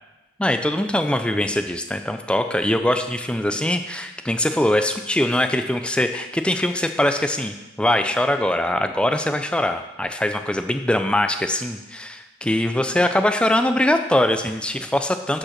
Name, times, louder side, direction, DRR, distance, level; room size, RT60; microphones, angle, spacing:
voice 1, 0.4-15.4, left 1 dB, 5° left, 7 dB, 0.5 m, -22 dB
10.5 x 5.5 x 5.9 m, 1.0 s
head